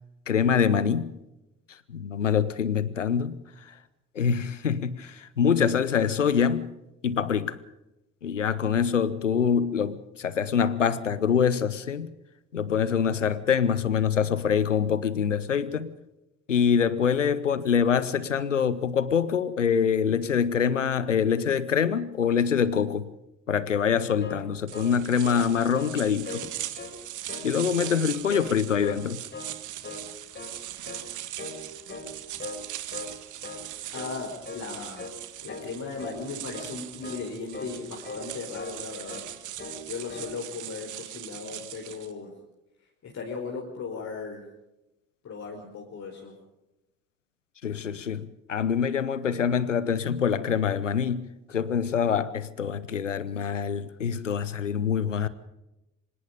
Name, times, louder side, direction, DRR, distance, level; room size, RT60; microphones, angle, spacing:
voice 1, 0.3-1.2 1.7-3.8 4.1-6.7 7.0-7.6 8.2-12.1 12.5-15.9 16.5-23.1 23.5-26.4 27.4-29.2 47.6-55.3, left 7 dB, 85° left, 0.9 m, -25 dB
sound 1, 24.0-25.5 25.7-26.0 26.2-26.9 27.3-28.0 28.3-29.0 29.3-29.6 29.8-30.6 30.9-31.1 31.4-31.6 31.9-32.6 32.9-33.1 33.4-33.7 33.9-34.2 34.4-34.7 35.0-35.2 35.5-35.7 36.0-36.2 36.5-36.7 37.0-37.3 37.5-37.8 38.0-38.8 39.1-39.3 39.6-39.8 40.1-40.3, left 3 dB, 30° left, 6.2 m, -39 dB
sound 2, 24.7-42.1, right 13 dB, 55° right, 1.8 m, -40 dB
voice 2, 33.9-35.1 35.4-39.2 39.8-42.3 43.0-44.5 45.2-46.3, left 4 dB, 45° left, 4.6 m, -37 dB
25.0 x 20.0 x 5.2 m
figure-of-eight pair, 45°, 36 cm